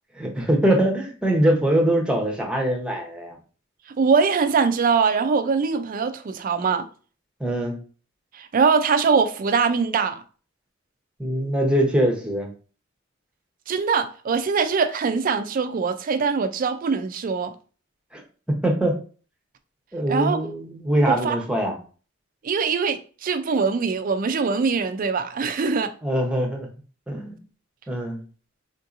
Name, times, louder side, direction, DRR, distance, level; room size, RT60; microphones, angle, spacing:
voice 1, 0.1-3.4 7.4-7.8 11.2-12.5 18.1-18.2 18.5-18.9 19.9-21.7 26.0-26.7 27.1-27.4 27.9-28.2, right 1 dB, 5° right, 0.8 m, -22 dB
voice 2, 4.0-6.9 8.3-10.2 13.7-17.5 20.1-20.4 21.1-21.4 22.4-25.9, right 5 dB, 45° right, 0.4 m, -22 dB
3.7 x 2.7 x 2.4 m
head